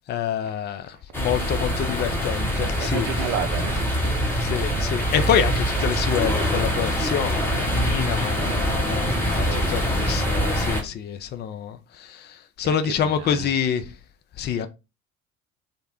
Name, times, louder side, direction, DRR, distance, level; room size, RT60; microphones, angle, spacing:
voice 1, 0.1-3.1 4.4-13.9 14.4-14.7, left 8 dB, 25° left, 0.4 m, -27 dB
sound 1, 1.1-10.8, equal, 5° left, 0.9 m, -24 dB
voice 2, 2.8-4.5 8.3-8.8 9.1-9.9 12.6-12.8 13.0-13.5, right 8 dB, 65° right, 0.6 m, -33 dB
2.5 x 2.1 x 3.3 m
hypercardioid pair, 60°, 42 cm